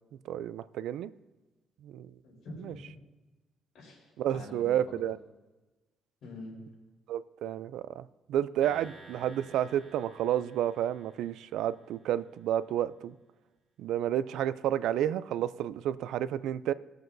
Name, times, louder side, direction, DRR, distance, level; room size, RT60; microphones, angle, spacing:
voice 1, 0.3-1.1 1.8-2.1 2.6-2.7 4.2-5.2 7.1-13.2 13.8-16.7, right 11 dB, 85° right, 16 dB, 0.3 m, -31 dB
voice 2, 2.2-2.9 3.7-5.1 6.2-6.6, left 2 dB, 70° left, -3 dB, 3.8 m, -46 dB
sound 1, 8.6-12.1, right 3 dB, 30° right, 1.8 m, -54 dB
20.5 x 7.7 x 2.6 m, 1.1 s
cardioid pair, 120°, 0 cm